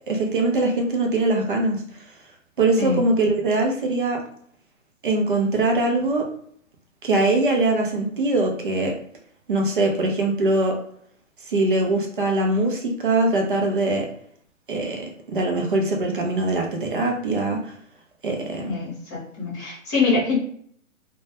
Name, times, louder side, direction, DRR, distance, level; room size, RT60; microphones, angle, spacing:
voice 1, 0.1-1.8 2.6-4.2 5.0-6.3 7.0-9.0 9.5-10.8 11.5-14.1 14.7-17.7 18.2-18.7, right 2 dB, 40° right, 1 dB, 0.4 m, -22 dB
voice 2, 18.6-20.4, left 4 dB, 20° left, -7 dB, 0.8 m, -24 dB
2.1 x 2.1 x 2.7 m, 0.64 s
hypercardioid pair, 150°, 41 cm